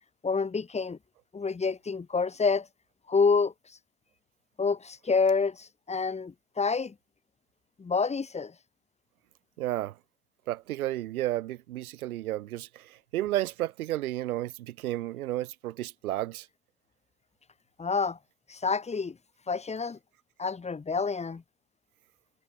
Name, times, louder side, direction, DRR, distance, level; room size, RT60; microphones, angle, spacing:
voice 1, 0.2-1.0 1.3-2.7 3.1-3.5 4.6-6.9 7.8-8.5 17.8-18.2 18.5-19.2 19.5-20.0 20.4-21.4, left 4 dB, 15° left, 5.8 m, -28 dB
voice 2, 9.6-10.0 10.5-16.5, right 15 dB, 70° right, 4.1 m, -32 dB
hypercardioid pair, 115°, 45 cm